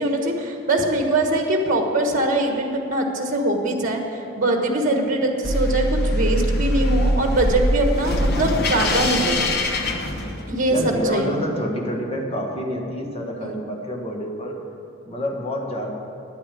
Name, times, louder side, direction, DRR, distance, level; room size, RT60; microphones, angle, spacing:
voice 1, 0.0-9.6 10.5-11.4 13.4-13.6, right 1 dB, 40° right, 3 dB, 1.4 m, -22 dB
sound 1, 5.4-10.7, equal, 50° left, 1.1 m, -22 dB
voice 2, 10.7-14.6 15.0-15.9, equal, 30° left, 0 dB, 1.6 m, -28 dB
10.0 x 9.6 x 8.5 m, 2.7 s
head